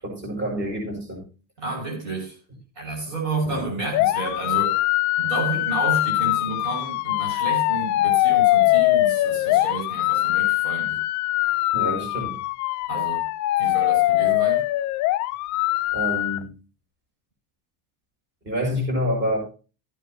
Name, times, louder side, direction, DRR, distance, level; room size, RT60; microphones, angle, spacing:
voice 1, 0.0-1.2 3.4-3.7 11.7-12.4 15.9-16.5 18.4-19.4, equal, 25° right, 6.7 m, -27 dB
voice 2, 1.6-2.4 2.8-4.8 5.2-11.0 12.9-13.2 13.6-14.6, right 3 dB, 45° right, 6.0 m, -31 dB
sound 1, 3.9-16.4, left 17 dB, 45° left, 0.5 m, -22 dB
15.5 x 9.1 x 3.0 m
cardioid pair, 175°, 43 cm